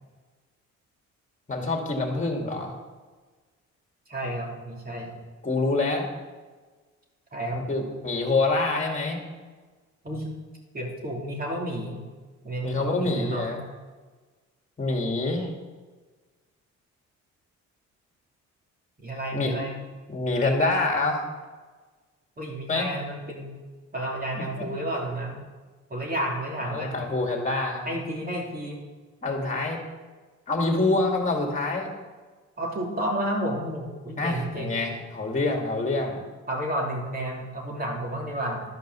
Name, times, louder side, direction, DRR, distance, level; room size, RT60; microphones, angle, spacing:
voice 1, 1.5-2.7 5.4-6.1 7.5-9.2 12.6-13.6 14.8-15.5 19.3-19.5 20.1-21.2 22.7-22.9 24.3-24.7 26.6-28.0 29.2-29.8 30.5-31.9 34.2-36.2, left 2 dB, 25° left, 2 dB, 2.2 m, -26 dB
voice 2, 4.1-5.1 7.3-7.6 10.0-10.3 10.7-12.0 12.4-13.6 19.0-19.8 22.4-23.6 23.9-25.4 25.9-27.0 27.8-28.8 32.6-34.9 36.5-38.6, right 1 dB, 30° right, -1 dB, 2.9 m, -31 dB
11.5 x 5.3 x 6.9 m, 1.4 s
cardioid pair, 90°, 30 cm